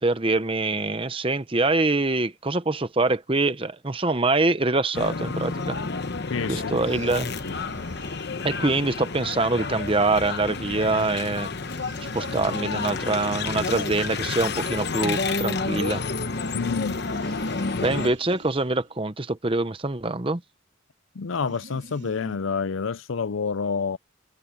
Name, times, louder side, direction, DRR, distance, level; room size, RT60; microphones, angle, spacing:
voice 1, 0.0-5.8 6.5-7.3 8.4-11.5 12.1-16.0 17.8-20.4, right 2 dB, 25° right, 0.9 m, -24 dB
sound 1, 4.9-18.1, left 4 dB, 55° left, 1.0 m, -30 dB
voice 2, 6.3-6.8 7.4-8.0 16.5-17.0 17.6-17.9 21.1-24.0, left 5 dB, 75° left, 0.6 m, -29 dB
sound 2, 6.8-8.7 11.0-14.7 16.8-19.1 21.3-22.4, right 2 dB, 60° right, 3.0 m, -48 dB
head